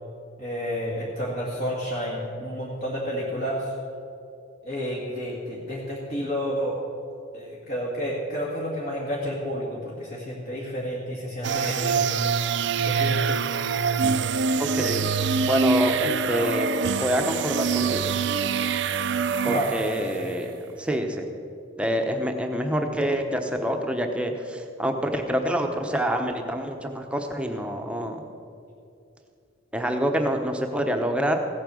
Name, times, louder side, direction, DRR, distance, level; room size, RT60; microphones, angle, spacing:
voice 1, 0.4-3.7 4.6-6.8 7.3-12.1 12.8-13.4 19.4-20.3, equal, 45° left, -5 dB, 2.0 m, -30 dB
sound 1, 11.4-20.3, right 5 dB, 60° right, 0.5 m, -25 dB
voice 2, 14.6-15.1 15.4-16.7 17.0-18.2 19.4-20.5 20.8-21.3 21.8-28.2 29.7-31.4, equal, 5° right, 4 dB, 0.9 m, -26 dB
16.0 x 8.8 x 6.3 m, 2.6 s
head